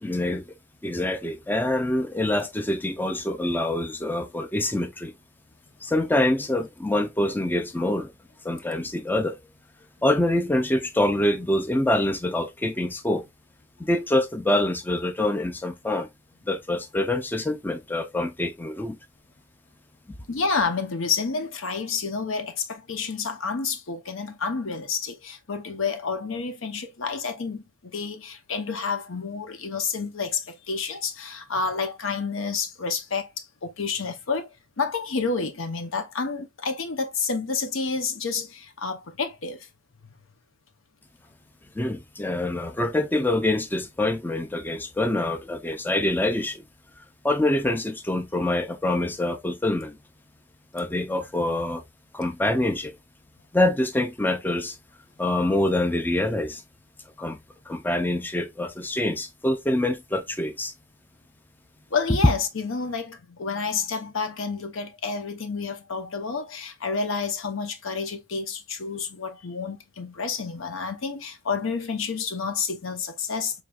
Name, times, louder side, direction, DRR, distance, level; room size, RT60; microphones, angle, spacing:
voice 1, 0.0-0.4 0.8-5.1 5.8-8.1 8.4-9.4 10.0-13.2 13.8-16.1 16.5-19.0 41.8-46.6 47.0-50.0 50.7-51.8 52.1-52.9 53.5-54.8 55.2-56.6 57.2-57.4 57.7-60.7, left 1 dB, 10° left, 0.3 m, -25 dB
voice 2, 20.3-34.5 34.8-39.6 61.9-73.6, left 5 dB, 85° left, 0.8 m, -29 dB
4.8 x 3.2 x 2.3 m
head